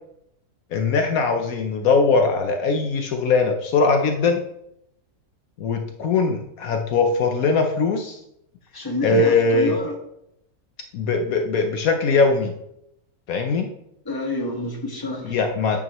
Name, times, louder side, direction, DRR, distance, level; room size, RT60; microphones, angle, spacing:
voice 1, 0.7-4.4 5.6-8.2 9.0-9.8 10.9-12.5 13.3-13.7 15.2-15.8, left 4 dB, 70° left, 5 dB, 1.1 m, -21 dB
voice 2, 8.7-10.0 14.0-15.4, left 2 dB, 15° left, 0 dB, 1.4 m, -28 dB
9.2 x 6.1 x 3.0 m, 0.77 s
omnidirectional pair, 1.6 m